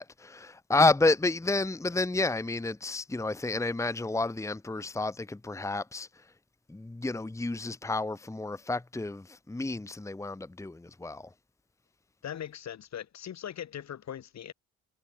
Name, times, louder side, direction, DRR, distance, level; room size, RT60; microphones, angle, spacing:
voice 1, 0.0-6.2 6.7-11.3, left 2 dB, 10° left, 1.1 m, -30 dB
voice 2, 12.2-14.5, left 9 dB, 60° left, 4.4 m, -40 dB
cardioid pair, 90°, 30 cm